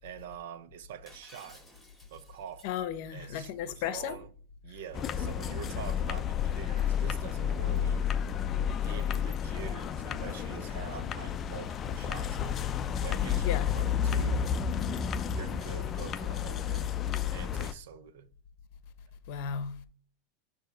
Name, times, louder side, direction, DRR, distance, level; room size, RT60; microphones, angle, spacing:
voice 1, 0.0-1.7 2.1-2.7 3.1-4.3 4.6-8.2 8.7-12.7 13.0-14.6 15.3-17.0 17.3-18.3, right 9 dB, 80° right, 0.6 m, -45 dB
Shatter, 1.1-2.8, left 1 dB, 5° left, 2.5 m, -56 dB
voice 2, 2.6-4.2 13.4-13.7 19.3-19.9, left 8 dB, 55° left, 0.7 m, -34 dB
sound 1, 4.9-17.7, left 8 dB, 25° left, 0.4 m, -31 dB
7.3 x 2.8 x 4.9 m
supercardioid pair, 145°, 0 cm